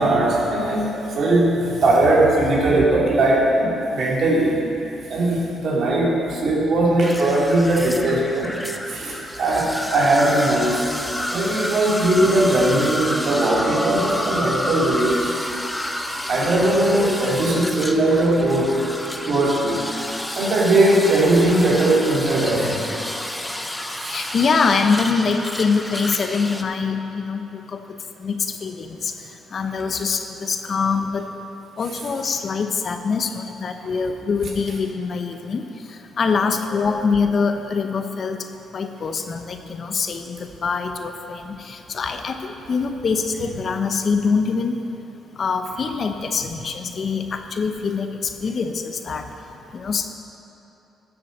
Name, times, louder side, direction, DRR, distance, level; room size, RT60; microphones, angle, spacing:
voice 1, 0.0-4.6 5.1-8.6 8.9-10.8 11.3-15.4 16.3-18.8 19.3-19.8 20.3-22.9 23.9-24.2 33.8-33.9 46.6-46.7, right 1 dB, 60° right, -3 dB, 2.9 m, -19 dB
sound 1, 7.0-26.6, left 1 dB, 5° left, 0.8 m, -30 dB
voice 2, 24.1-31.3 31.8-44.9 45.3-49.3 49.7-50.1, left 5 dB, 50° left, 7 dB, 0.8 m, -24 dB
12.5 x 7.3 x 6.5 m, 3.0 s
cardioid pair, 90°, 0 cm